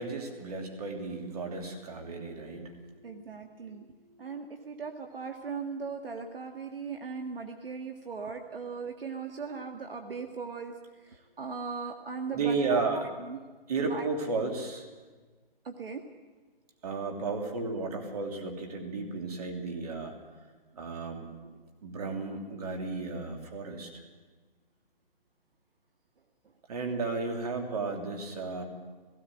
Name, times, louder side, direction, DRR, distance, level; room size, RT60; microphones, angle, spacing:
voice 1, 0.0-3.1 12.3-13.0 13.7-14.8 16.8-20.1 20.8-21.6 21.8-24.0 26.7-28.6, right 4 dB, 40° right, 3 dB, 3.1 m, -33 dB
voice 2, 3.0-3.9 4.2-10.8 11.0-13.4 13.8-14.1 15.6-16.0, right 5 dB, 70° right, 5 dB, 1.8 m, -38 dB
17.5 x 16.5 x 9.2 m, 1.3 s
hypercardioid pair, 165°, 30 cm